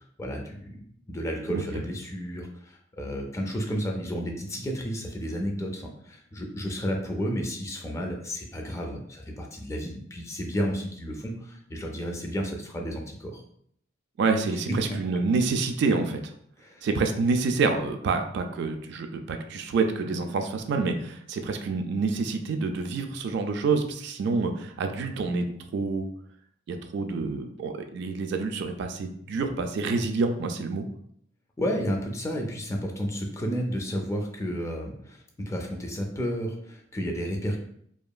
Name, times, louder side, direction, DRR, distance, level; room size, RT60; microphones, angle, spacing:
voice 1, 0.2-13.4 16.6-16.8 31.6-37.6, equal, 15° left, 2 dB, 0.4 m, -32 dB
voice 2, 14.2-16.3 16.8-25.5 25.7-26.1 26.7-30.9, right 4 dB, 65° right, 6 dB, 0.3 m, -27 dB
2.8 x 2.3 x 2.2 m, 0.67 s
head